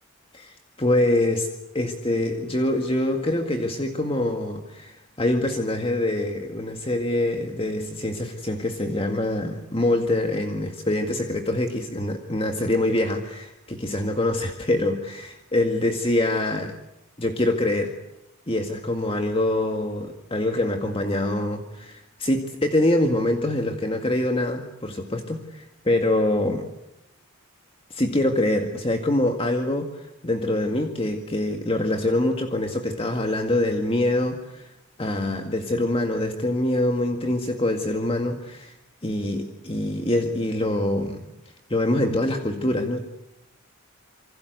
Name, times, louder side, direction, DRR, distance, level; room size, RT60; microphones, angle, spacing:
voice 1, 0.3-1.5 1.7-16.7 17.2-17.9 18.5-26.7 27.9-34.7 35.0-38.7 39.0-41.3 41.7-43.0, left 1 dB, 25° left, 4 dB, 2.0 m, -25 dB
28.5 x 25.0 x 8.1 m, 0.82 s
head